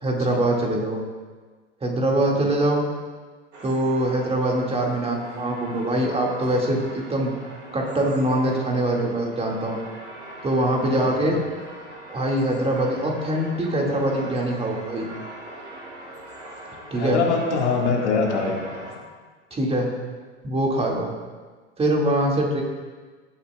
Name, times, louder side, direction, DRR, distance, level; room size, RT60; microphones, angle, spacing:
voice 1, 0.0-1.0 1.8-2.8 3.6-7.3 7.7-9.8 10.4-11.4 12.1-15.1 16.9-17.2 19.5-19.9 20.4-21.1 21.8-22.6, right 1 dB, 15° right, -1 dB, 2.1 m, -23 dB
sound 1, 3.5-19.0, right 1 dB, 85° right, 2.0 m, -41 dB
voice 2, 11.0-11.4 16.9-19.0, left 4 dB, 75° left, 0 dB, 1.9 m, -24 dB
17.5 x 8.7 x 2.3 m, 1.4 s
figure-of-eight pair, 85°, 35 cm